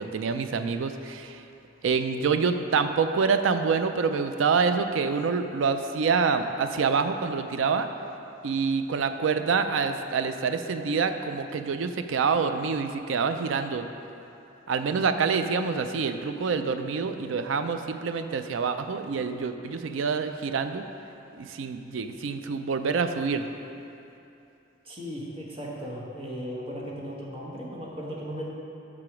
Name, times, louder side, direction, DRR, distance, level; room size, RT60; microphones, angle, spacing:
voice 1, 0.0-1.4 1.8-7.9 8.4-13.9 14.7-20.8 21.4-23.5, right 5 dB, 80° right, 8 dB, 0.4 m, -26 dB
voice 2, 24.8-28.4, equal, 30° right, -4 dB, 1.1 m, -36 dB
5.9 x 4.9 x 5.9 m, 2.8 s
head